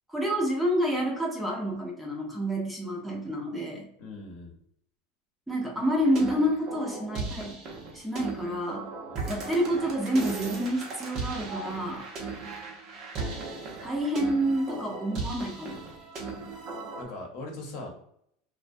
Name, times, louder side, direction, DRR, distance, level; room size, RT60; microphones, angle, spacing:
voice 1, 0.1-3.9 5.5-7.6 7.9-8.9 9.3-12.1 13.8-15.8, equal, 5° right, -2 dB, 0.6 m, -28 dB
voice 2, 4.0-4.5 9.1-9.3 16.1-16.5 17.0-17.9, left 2 dB, 60° left, 1 dB, 0.8 m, -41 dB
sound 1, 6.0-17.0, right 3 dB, 45° right, 0.7 m, -37 dB
2.4 x 2.2 x 2.5 m, 0.70 s
supercardioid pair, 130°, 0 cm